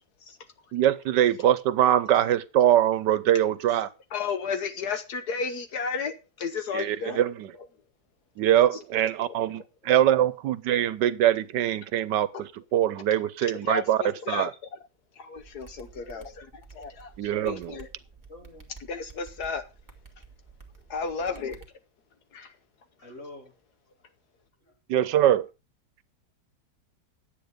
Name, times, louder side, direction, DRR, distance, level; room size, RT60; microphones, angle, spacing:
voice 1, 0.7-3.9 6.7-7.5 8.4-14.5 17.2-17.8 24.9-25.5, right 11 dB, 85° right, 1.4 m, -23 dB
voice 2, 4.1-7.2 12.3-12.4 13.4-14.5 15.2-16.4 16.7-17.9 18.9-19.6 20.9-21.6 22.3-22.5, left 5 dB, 70° left, 1.4 m, -33 dB
sound 1, 15.3-21.7, right 5 dB, 10° right, 1.9 m, -51 dB
voice 3, 15.9-16.3 18.3-18.7 21.0-21.4 23.0-23.6 24.0-24.1 24.6-24.8, left 2 dB, 45° left, 3.4 m, -47 dB
10.5 x 8.5 x 5.1 m
omnidirectional pair, 1.8 m